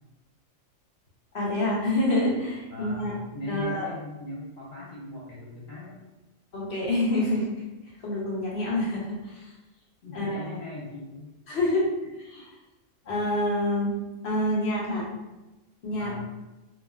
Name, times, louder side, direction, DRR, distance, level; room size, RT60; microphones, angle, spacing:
voice 1, 1.3-3.2 3.5-3.9 6.5-7.5 8.0-9.4 10.1-10.5 11.5-11.9 12.3-12.4 13.1-14.0 14.2-15.1 15.8-16.1, left 1 dB, 55° left, -5 dB, 1.2 m, -27 dB
voice 2, 2.7-6.0 10.0-11.3 15.9-16.3, left 2 dB, 75° left, -8 dB, 1.7 m, -39 dB
3.4 x 3.1 x 2.4 m, 1.0 s
omnidirectional pair, 1.4 m